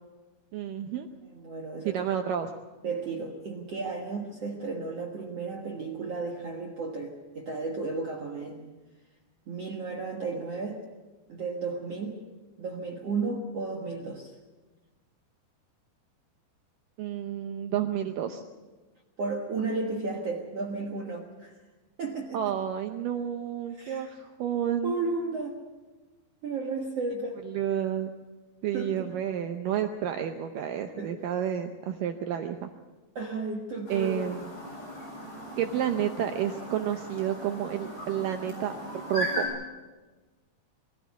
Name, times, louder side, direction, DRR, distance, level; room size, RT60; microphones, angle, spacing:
voice 1, 0.5-1.1 1.9-2.5 17.0-18.4 22.3-24.9 27.4-28.1 28.6-32.7 33.9-34.4 35.6-39.4, right 10 dB, 85° right, 6 dB, 1.9 m, -30 dB
voice 2, 1.3-2.1 2.8-8.7 9.5-10.8 11.3-12.2 12.6-14.3 19.2-21.6 22.0-22.5 23.7-24.1 24.8-25.6 26.4-27.4 28.7-29.1 31.0-31.1 33.1-34.3, right 3 dB, 60° right, 1 dB, 1.7 m, -33 dB
Chirp tweet, 33.9-39.5, equal, 40° left, 8.8 m, -38 dB
22.0 x 14.5 x 8.2 m, 1.2 s
omnidirectional pair, 5.0 m